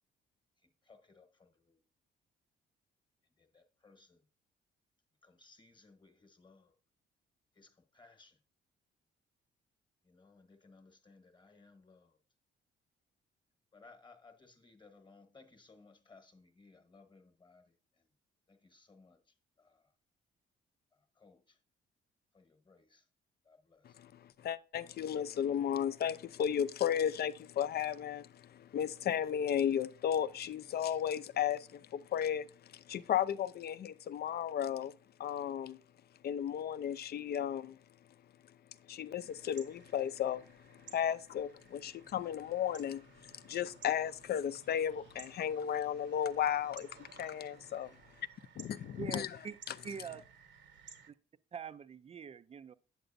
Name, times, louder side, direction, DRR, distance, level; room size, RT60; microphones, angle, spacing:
voice 1, 0.6-1.8 3.4-4.2 5.2-6.7 7.5-8.4 10.0-12.2 13.7-18.1 18.5-19.9 21.2-21.6 22.3-23.1 23.4-24.0, left 3 dB, 25° left, 1.1 m, -62 dB
voice 2, 23.8-34.9 35.2-35.8 36.2-37.8 38.9-48.0 48.6-49.3, left 9 dB, 55° left, 0.5 m, -34 dB
sound 1, 39.2-51.1, right 6 dB, 65° right, 1.0 m, -58 dB
voice 3, 49.0-49.6 49.8-50.2 51.1-51.2 51.5-52.7, right 6 dB, 30° right, 0.4 m, -44 dB
7.9 x 7.9 x 2.6 m
cardioid pair, 90°, 20 cm